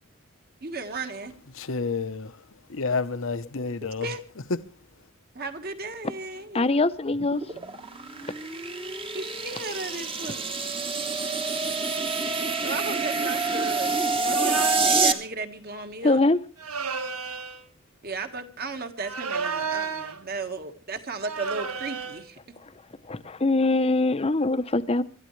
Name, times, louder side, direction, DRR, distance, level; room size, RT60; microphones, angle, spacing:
voice 1, 0.6-1.3 4.0-4.2 5.3-6.7 9.1-10.6 12.6-16.2 18.0-22.4, right 3 dB, 45° right, 1.6 m, -35 dB
voice 2, 1.5-4.1 4.5-4.6, left 4 dB, 60° left, 0.9 m, -30 dB
voice 3, 6.5-7.4 16.0-16.4 22.6-22.7 23.0-25.0, left 2 dB, 25° left, 0.7 m, -23 dB
sound 1, 7.1-15.1, right 3 dB, 25° right, 1.1 m, -27 dB
sound 2, 14.3-15.2 16.6-17.6 19.0-20.2 21.2-22.2, right 5 dB, 90° right, 1.5 m, -32 dB
26.5 x 12.5 x 3.2 m
head